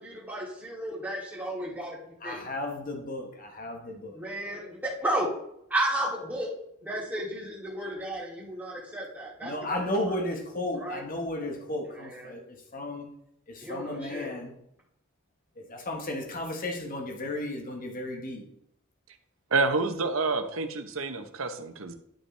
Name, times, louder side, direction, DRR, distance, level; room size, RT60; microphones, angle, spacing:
voice 1, 0.0-2.4 4.1-5.3 5.7-6.5 6.8-10.1 10.8-11.0 11.9-12.4 13.6-14.3, right 1 dB, 10° right, -5 dB, 2.7 m, -33 dB
voice 2, 2.2-4.2 4.5-4.7 9.4-13.1 13.5-14.5 15.5-18.4, left 1 dB, 40° left, 2 dB, 1.4 m, -34 dB
voice 3, 19.5-21.9, right 3 dB, 65° right, 7 dB, 0.9 m, -28 dB
11.5 x 5.4 x 3.3 m, 0.74 s
head